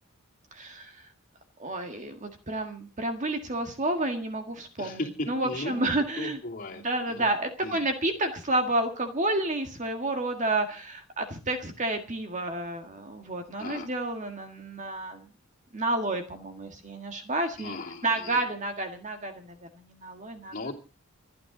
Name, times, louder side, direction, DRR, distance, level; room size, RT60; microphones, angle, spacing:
voice 1, 0.5-1.1 1.6-6.4 6.8-15.3 15.7-17.7 18.0-20.5, right 2 dB, 35° right, 6 dB, 1.7 m, -30 dB
voice 2, 4.8-5.9 6.2-6.8 7.1-7.3 7.6-7.9 13.6-13.9 17.6-18.4 20.5-20.7, left 2 dB, 40° left, 0 dB, 2.8 m, -36 dB
27.5 x 9.6 x 3.9 m, 0.35 s
head